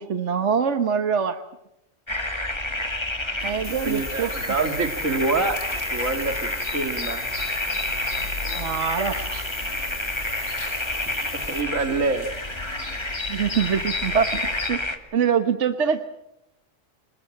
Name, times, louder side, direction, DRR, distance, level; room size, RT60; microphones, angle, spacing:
voice 1, 0.0-1.4 3.4-4.3 8.5-9.5 13.3-14.8 15.1-16.0, right 7 dB, 65° right, 9 dB, 1.5 m, -24 dB
sound 1, 2.1-15.0, left 1 dB, 20° left, 2.3 m, -30 dB
sound 2, 3.4-14.7, left 4 dB, 85° left, 3.5 m, -38 dB
sound 3, 3.6-11.6, left 1 dB, 45° left, 4.1 m, -38 dB
voice 2, 3.8-5.6 5.9-7.2 11.3-12.3, right 3 dB, 80° right, 7 dB, 2.7 m, -26 dB
27.5 x 22.0 x 7.6 m, 0.84 s
omnidirectional pair, 1.3 m